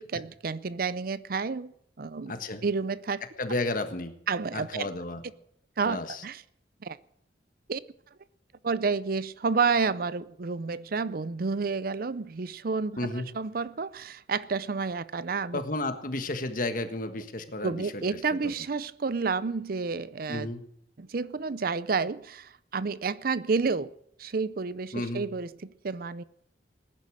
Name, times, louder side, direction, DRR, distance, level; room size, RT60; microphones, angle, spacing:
voice 1, 0.0-2.3 2.6-3.2 4.3-4.9 5.8-6.4 6.8-7.0 7.7-7.8 8.6-15.6 17.6-20.5 21.0-23.9 24.2-26.2, right 4 dB, 55° right, 0.5 m, -30 dB
voice 2, 2.3-2.6 3.4-4.1 4.5-5.2 5.9-6.2 13.0-13.3 15.5-18.5 20.3-20.6 24.9-25.2, left 2 dB, 50° left, 1.5 m, -32 dB
19.0 x 10.5 x 6.4 m
head